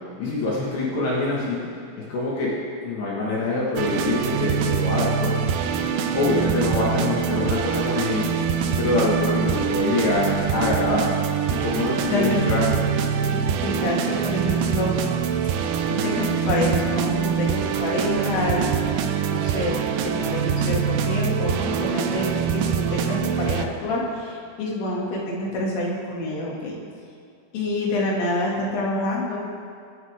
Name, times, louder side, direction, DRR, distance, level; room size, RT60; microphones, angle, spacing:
voice 1, 0.2-1.6 2.1-2.5 2.8-5.5 6.1-8.4 8.8-11.1 11.5-12.8, left 2 dB, 65° left, -6 dB, 3.9 m, -24 dB
sound 1, 3.8-23.6, right 7 dB, 85° right, 2.3 m, -24 dB
voice 2, 12.0-12.6 13.0-15.0 15.9-18.9 19.3-19.8 20.0-26.8 27.5-29.4, left 1 dB, 85° left, -4 dB, 5.0 m, -27 dB
25.0 x 9.6 x 3.7 m, 2.3 s
omnidirectional pair, 5.5 m